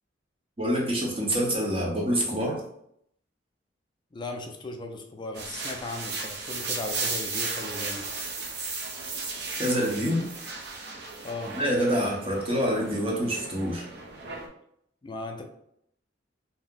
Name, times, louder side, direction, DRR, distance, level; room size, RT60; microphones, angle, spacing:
voice 1, 0.6-2.6 9.6-10.3 11.5-13.8, equal, 30° right, -2 dB, 0.8 m, -26 dB
voice 2, 4.1-8.1 11.2-11.5 15.0-15.4, left 2 dB, 25° left, 4 dB, 0.4 m, -37 dB
sound 1, 5.3-14.5, right 4 dB, 60° right, 0.6 m, -35 dB
2.7 x 2.0 x 3.7 m, 0.72 s
head